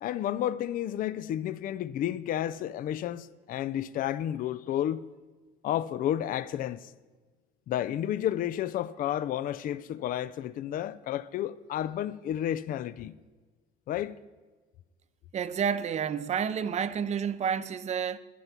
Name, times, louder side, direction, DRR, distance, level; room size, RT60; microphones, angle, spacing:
voice 1, 0.0-5.0 5.6-6.9 7.7-13.2 13.9-14.2, left 11 dB, 55° left, 0.4 m, -31 dB
voice 2, 15.3-18.2, right 7 dB, 40° right, 0.6 m, -30 dB
11.5 x 10.5 x 5.9 m
cardioid pair, 110°, 17 cm